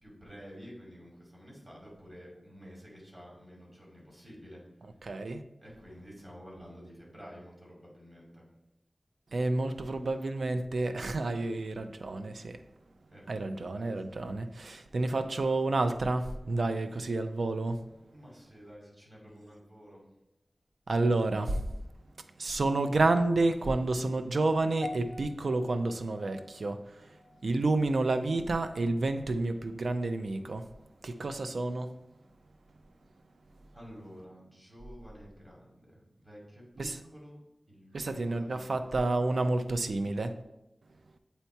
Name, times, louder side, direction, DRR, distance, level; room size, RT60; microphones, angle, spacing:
voice 1, 0.0-4.6 5.6-8.4 13.1-14.0 18.1-20.0 33.7-37.4 37.7-38.8, equal, 25° right, 2.4 m, -50 dB
voice 2, 5.0-5.4 9.3-12.6 13.3-17.8 20.9-21.7 22.4-27.2 27.4-30.7 31.0-31.9 36.8-37.0 37.9-40.3, right 2 dB, 85° right, 0.4 m, -30 dB
sound 1, 24.8-29.2 29.5-29.8 30.5-30.6, left 3 dB, 55° left, 0.5 m, -48 dB
8.0 x 2.9 x 4.4 m
wide cardioid pair, 70°, 0 cm